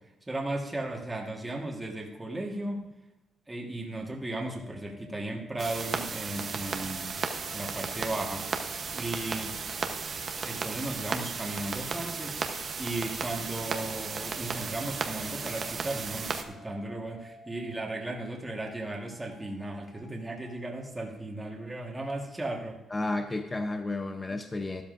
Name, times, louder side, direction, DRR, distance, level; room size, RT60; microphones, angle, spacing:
voice 1, 0.3-2.9 3.5-7.2 7.5-8.5 8.9-9.6 10.4-22.8, right 2 dB, 10° right, -1 dB, 1.5 m, -36 dB
sound 1, 4.0-11.4 13.4-20.7, left 2 dB, 40° left, 1.0 m, -54 dB
sound 2, 5.6-16.4, right 5 dB, 40° right, 0.9 m, -35 dB
sound 3, 9.2-10.5 11.2-12.3 13.0-14.5, left 4 dB, 80° left, 2.7 m, -59 dB
voice 2, 22.9-24.8, left 2 dB, 15° left, 5 dB, 0.7 m, -32 dB
13.5 x 12.5 x 2.6 m, 1.0 s
cardioid pair, 140°, 0 cm